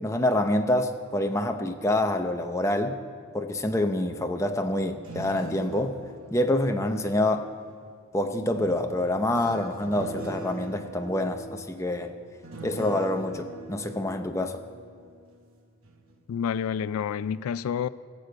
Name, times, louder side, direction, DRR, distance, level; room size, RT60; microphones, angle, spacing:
voice 1, 0.0-3.0 3.3-6.0 6.3-7.5 8.1-12.1 12.6-14.6, left 1 dB, 15° left, 0.6 m, -26 dB
sound 1, 4.9-7.7 8.5-15.5 15.8-16.1, right 3 dB, 80° right, 1.1 m, -43 dB
voice 2, 16.3-17.9, left 7 dB, 85° left, 0.3 m, -29 dB
16.0 x 6.8 x 7.8 m
head